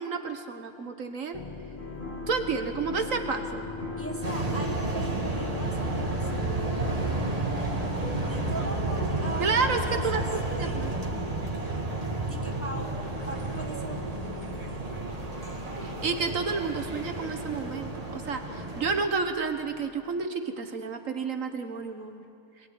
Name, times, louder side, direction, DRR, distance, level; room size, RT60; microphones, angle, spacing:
voice 1, 0.0-1.4 2.3-3.7 9.4-9.8 10.0-10.9 15.8-22.2, right 5 dB, 60° right, 6 dB, 1.6 m, -30 dB
sound 1, 1.3-20.2, left 4 dB, 30° left, 0.6 m, -43 dB
sound 2, 1.8-8.4, left 2 dB, 55° left, 2.8 m, -40 dB
voice 2, 4.0-11.1 12.2-12.9 13.3-14.8, right 1 dB, 10° left, 2 dB, 1.4 m, -40 dB
sound 3, 4.2-19.0, right 2 dB, 25° right, 1.9 m, -32 dB
21.5 x 17.0 x 9.4 m, 2.5 s
omnidirectional pair, 1.6 m